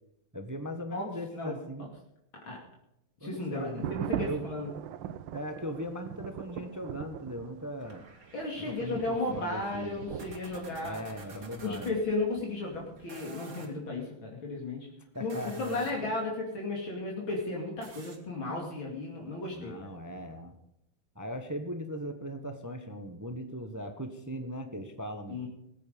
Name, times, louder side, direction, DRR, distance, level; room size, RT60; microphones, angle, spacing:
voice 1, 0.3-1.9 3.2-4.4 5.3-8.0 8.6-10.0 10.8-11.9 15.1-15.9 19.5-20.5 21.1-25.4, equal, 10° right, 7 dB, 0.9 m, -39 dB
voice 2, 0.9-1.6 2.5-2.6 3.2-4.7 8.3-11.0 11.6-14.9 15.2-19.8 25.3-25.5, left 2 dB, 65° left, -1 dB, 3.4 m, -34 dB
sound 1, 3.6-13.1, right 11 dB, 70° right, 1.3 m, -41 dB
sound 2, 7.8-11.9 13.0-13.7 15.1-16.1 17.8-18.2, right 3 dB, 40° right, 2.4 m, -50 dB
19.5 x 9.4 x 5.4 m, 0.82 s
omnidirectional pair, 2.3 m